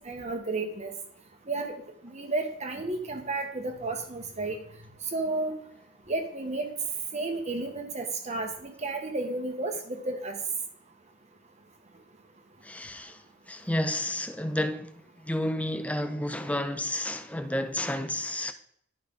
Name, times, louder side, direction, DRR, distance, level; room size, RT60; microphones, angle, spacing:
voice 1, 0.0-0.9 1.5-1.7 2.0-4.6 5.1-5.5 6.1-6.7 7.1-10.4, right 2 dB, 30° right, 1.3 m, -32 dB
voice 2, 12.6-13.2 13.5-18.5, left 1 dB, 5° left, 0.5 m, -31 dB
12.0 x 5.6 x 3.8 m
head